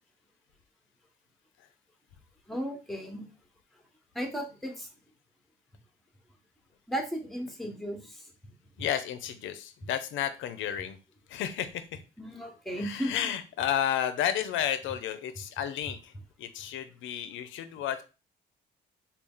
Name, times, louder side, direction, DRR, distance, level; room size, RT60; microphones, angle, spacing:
voice 1, 2.5-3.3 4.1-4.9 6.9-8.2 12.2-13.3, equal, ahead, 3 dB, 0.9 m, -35 dB
voice 2, 8.8-11.0 11.3-11.8 12.7-16.1 16.4-18.0, left 10 dB, 80° left, 11 dB, 0.5 m, -32 dB
3.3 x 2.3 x 3.6 m, 0.31 s
cardioid pair, 90°, 20 cm